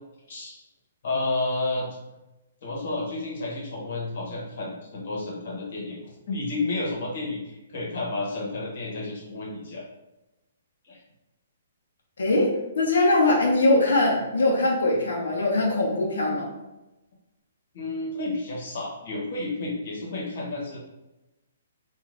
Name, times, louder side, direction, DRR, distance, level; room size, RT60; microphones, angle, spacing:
voice 1, 1.0-1.9 2.6-6.0 6.3-9.8 10.9-11.0 17.7-20.8, left 2 dB, 60° left, -2 dB, 1.0 m, -31 dB
voice 2, 12.2-16.5, left 2 dB, 85° left, -1 dB, 0.7 m, -22 dB
2.5 x 2.4 x 3.3 m, 0.99 s
hypercardioid pair, 155°, 0 cm